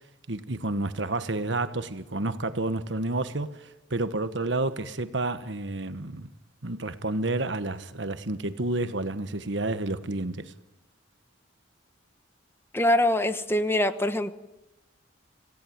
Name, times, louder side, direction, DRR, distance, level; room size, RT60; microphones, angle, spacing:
voice 1, 0.3-6.3 6.6-10.5, right 2 dB, 75° right, 1.3 m, -30 dB
voice 2, 12.7-14.3, left 1 dB, 15° left, 1.1 m, -24 dB
26.5 x 17.5 x 9.5 m
head